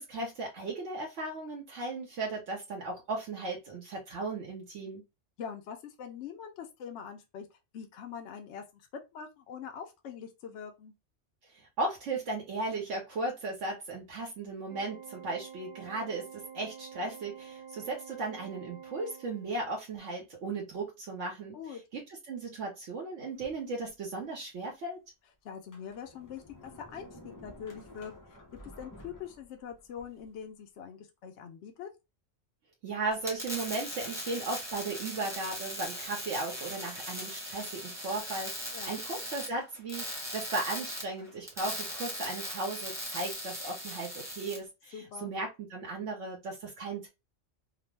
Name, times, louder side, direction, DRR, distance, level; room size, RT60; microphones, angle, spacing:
voice 1, 0.0-5.0 11.5-25.0 32.8-47.1, right 3 dB, 80° right, 1.1 m, -36 dB
voice 2, 5.4-8.9 9.1-10.9 21.5-21.8 25.4-28.4 28.8-31.9 38.7-39.0 44.9-45.3, left 7 dB, 75° left, 0.8 m, -43 dB
Organ, 14.7-19.8, right 7 dB, 40° right, 0.5 m, -48 dB
Sliding door, 23.4-24.3 24.8-24.9 25.5-30.3, left 1 dB, 30° left, 0.3 m, -52 dB
Weld Metal Shock Electric, 33.1-44.6, equal, 5° right, 0.9 m, -39 dB
2.9 x 2.0 x 3.1 m
omnidirectional pair, 1.2 m